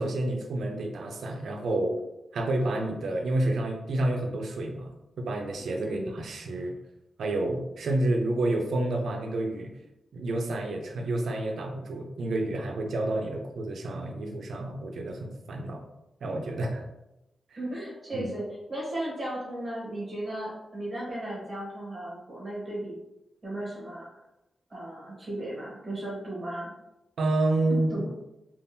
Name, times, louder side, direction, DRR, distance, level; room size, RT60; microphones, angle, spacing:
voice 1, 0.0-2.0 2.3-6.8 7.2-9.7 10.1-15.8 16.2-16.8 18.1-18.3 27.2-27.9, right 2 dB, 80° right, 2 dB, 0.5 m, -29 dB
voice 2, 17.6-23.0 23.4-24.1 24.7-26.7 27.7-28.1, right 1 dB, 30° right, -5 dB, 1.0 m, -35 dB
3.5 x 2.4 x 2.7 m, 0.91 s
wide cardioid pair, 140°, 0 cm